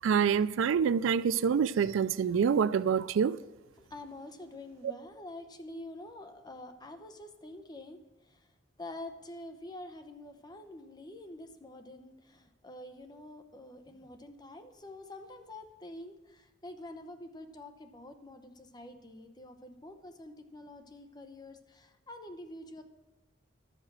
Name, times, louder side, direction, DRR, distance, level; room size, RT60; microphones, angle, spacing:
voice 1, 0.0-3.4, right 7 dB, 80° right, 0.3 m, -26 dB
voice 2, 3.8-8.0 8.2-8.5 8.8-22.8, left 1 dB, 20° left, 0.8 m, -47 dB
11.5 x 6.7 x 6.1 m
head